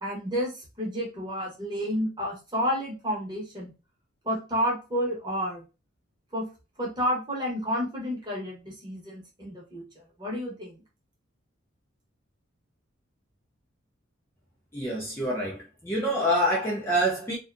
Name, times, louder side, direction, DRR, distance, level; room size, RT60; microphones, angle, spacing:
voice 1, 0.0-3.7 4.2-5.6 6.3-6.5 6.8-9.8 10.2-10.8, equal, 20° right, 0.9 m, -30 dB
voice 2, 14.7-17.4, equal, 10° left, 0.4 m, -26 dB
2.6 x 2.2 x 2.4 m
head